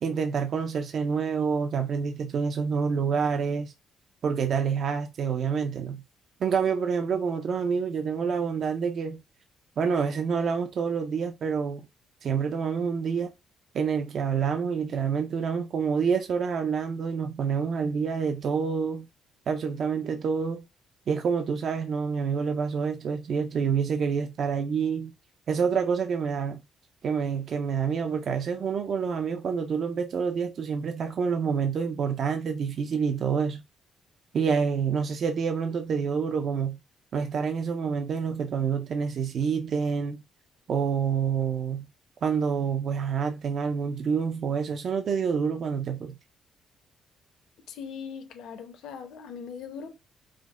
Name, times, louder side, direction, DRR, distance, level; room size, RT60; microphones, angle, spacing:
voice 1, 0.0-3.7 4.2-6.0 6.4-9.2 9.8-11.8 12.2-13.3 13.7-19.1 19.5-20.6 21.1-25.1 25.5-26.6 27.0-33.6 34.3-36.8 37.1-40.2 40.7-41.9 42.2-46.2, right 6 dB, 40° right, 0.4 m, -27 dB
voice 2, 47.7-49.9, left 6 dB, 75° left, 0.9 m, -40 dB
5.0 x 2.1 x 3.6 m
cardioid pair, 180°, 0 cm